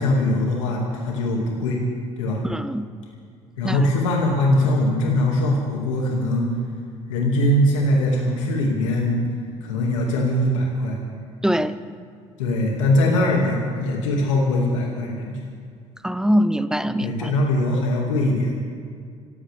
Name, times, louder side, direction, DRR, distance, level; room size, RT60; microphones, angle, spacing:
voice 1, 0.0-1.8 2.2-2.4 3.6-6.5 7.1-9.2 9.6-11.0 12.4-15.4 17.0-18.6, left 1 dB, 85° left, -2 dB, 2.3 m, -21 dB
voice 2, 2.4-2.8 3.6-3.8 11.4-11.8 16.0-17.3, equal, 5° right, 14 dB, 0.9 m, -22 dB
26.0 x 14.5 x 3.5 m, 2.2 s
hypercardioid pair, 55°, 16 cm